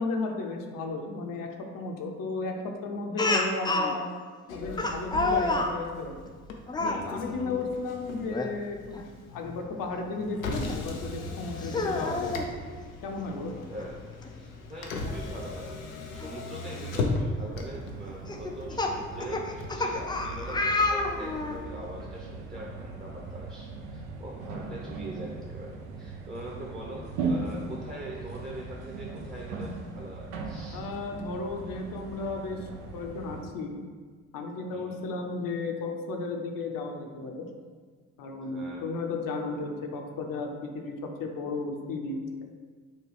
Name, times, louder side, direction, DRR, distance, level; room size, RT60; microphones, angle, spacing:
voice 1, 0.0-4.1 4.5-6.2 6.7-9.0 9.3-12.3 13.0-13.5 30.7-33.8 34.3-37.4 38.2-42.2, left 3 dB, 55° left, 3 dB, 0.7 m, -34 dB
Speech, 3.2-3.9 4.8-5.7 6.7-7.0 8.3-8.5 8.9-9.0 10.7-10.8 11.6-12.5 13.8-13.9 14.2-14.3 16.2-16.3 16.9-17.2 18.3-21.6, left 2 dB, 10° left, 0.4 m, -28 dB
Motor vehicle (road), 4.5-21.6, left 3 dB, 90° left, 0.5 m, -38 dB
voice 2, 13.7-14.0 14.4-30.8 34.7-35.0 38.4-38.8, right 1 dB, 20° right, -3 dB, 1.0 m, -42 dB
sound 1, 17.5-33.4, right 3 dB, 65° right, 0.7 m, -39 dB
6.4 x 2.3 x 3.3 m, 1.6 s
hypercardioid pair, 45°, 40 cm